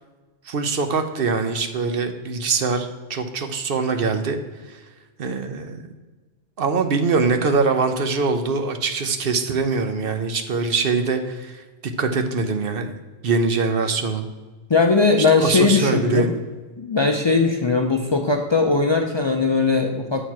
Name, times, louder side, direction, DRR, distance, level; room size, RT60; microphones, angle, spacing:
voice 1, 0.5-4.4 4.7-4.8 5.2-5.8 6.6-11.6 12.0-12.9 13.2-14.2 15.2-16.3, right 4 dB, 60° right, 7 dB, 0.8 m, -23 dB
voice 2, 14.7-16.3 16.8-20.3, left 4 dB, 45° left, 3 dB, 0.3 m, -19 dB
6.7 x 4.5 x 5.8 m, 1.3 s
omnidirectional pair, 1.2 m